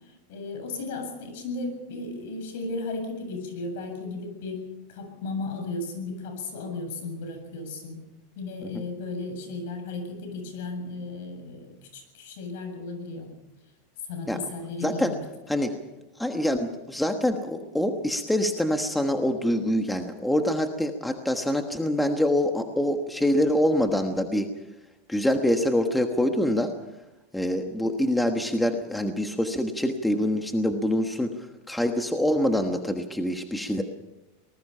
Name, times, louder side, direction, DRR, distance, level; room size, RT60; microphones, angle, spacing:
voice 1, 0.3-8.0 8.4-13.3 14.1-15.2, left 3 dB, 65° left, 6 dB, 7.5 m, -35 dB
voice 2, 14.8-15.1 15.5-15.7 16.2-24.5 25.1-26.7 27.3-33.8, left 1 dB, 5° left, 5 dB, 1.3 m, -25 dB
24.5 x 20.0 x 5.7 m, 1.0 s
supercardioid pair, 160°, 0 cm